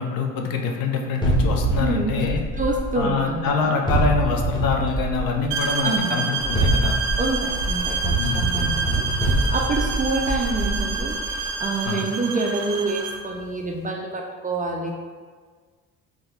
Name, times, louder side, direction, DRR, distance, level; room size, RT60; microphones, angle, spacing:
voice 1, 0.0-2.4 2.9-7.0 8.2-8.5 11.8-12.1, left 5 dB, 60° left, 2 dB, 0.6 m, -25 dB
sound 1, 1.2-3.3 3.9-5.7 6.4-11.4, right 1 dB, 10° left, 1.0 m, -24 dB
voice 2, 1.8-3.8 5.8-6.2 7.2-14.9, right 3 dB, 20° right, 0 dB, 0.3 m, -27 dB
sound 2, 5.5-13.3, right 5 dB, 70° right, 0.6 m, -28 dB
3.7 x 2.3 x 3.0 m, 1.5 s
hypercardioid pair, 60°, 41 cm